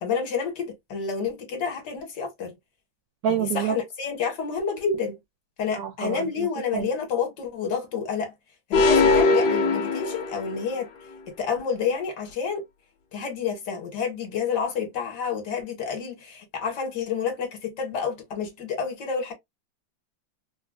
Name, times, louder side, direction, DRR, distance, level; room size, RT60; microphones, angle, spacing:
voice 1, 0.0-2.5 3.3-5.2 5.6-8.3 8.7-10.9 11.4-12.6 13.1-19.3, left 6 dB, 65° left, 1.6 m, -29 dB
voice 2, 3.2-3.7 5.7-6.5 6.7-6.9, right 8 dB, 75° right, 0.8 m, -27 dB
sound 1, 8.7-10.7, left 3 dB, 80° left, 1.3 m, -21 dB
3.8 x 2.2 x 2.3 m
omnidirectional pair, 2.1 m